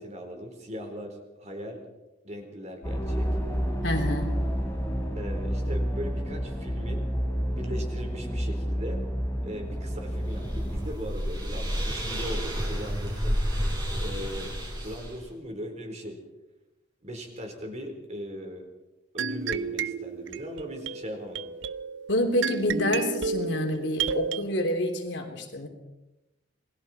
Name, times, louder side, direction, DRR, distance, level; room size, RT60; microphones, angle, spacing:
voice 1, 0.0-1.8 2.2-3.4 5.2-7.1 7.5-9.0 9.4-13.4 14.0-14.5 14.8-16.2 17.0-18.7 19.1-21.5, equal, 40° right, 3 dB, 4.2 m, -39 dB
sound 1, 2.8-10.9, equal, 15° left, 4.2 m, -30 dB
voice 2, 3.8-4.4 22.1-25.7, left 1 dB, 70° left, 3 dB, 3.5 m, -27 dB
sound 2, 9.9-15.2, equal, 20° right, 6.5 m, -31 dB
sound 3, 19.2-24.4, right 5 dB, 80° right, 0.7 m, -32 dB
27.5 x 21.0 x 4.5 m, 0.99 s
head